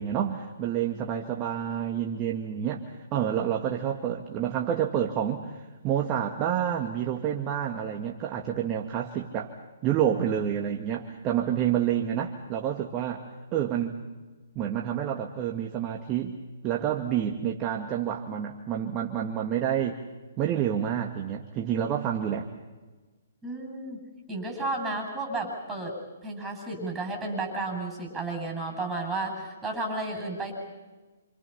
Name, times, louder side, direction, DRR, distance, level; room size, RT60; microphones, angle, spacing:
voice 1, 0.0-9.5 9.8-13.3 13.5-14.0 14.6-16.4 16.6-20.0 20.4-22.5, right 9 dB, 25° right, 2 dB, 1.8 m, -28 dB
voice 2, 23.4-24.0 24.3-25.9 26.2-30.5, right 2 dB, 10° right, 3 dB, 7.8 m, -32 dB
28.5 x 27.5 x 5.8 m, 1.2 s
hypercardioid pair, 140°, 0 cm